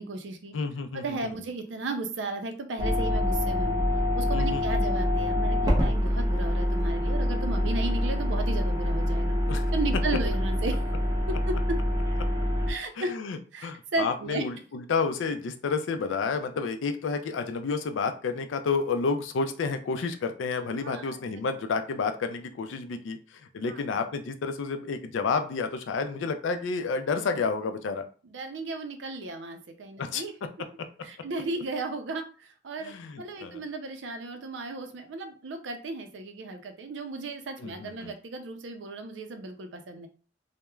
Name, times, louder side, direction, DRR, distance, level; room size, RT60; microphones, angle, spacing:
voice 1, 0.0-0.6 0.9-3.8 4.1-9.4 9.7-10.8 11.3-11.5 12.7-13.1 13.5-14.4 20.8-21.2 23.7-23.8 28.2-30.3 31.0-40.1, right 2 dB, 70° right, 6 dB, 0.5 m, -35 dB
voice 2, 0.5-1.3 4.3-4.6 9.5-9.6 13.0-23.2 23.5-28.1 30.0-30.2 32.8-33.6 37.6-38.1, left 4 dB, 80° left, 8 dB, 0.4 m, -30 dB
sound 1, 2.8-12.7, left 1 dB, 20° right, 0.6 m, -26 dB
3.0 x 2.1 x 2.3 m, 0.38 s
head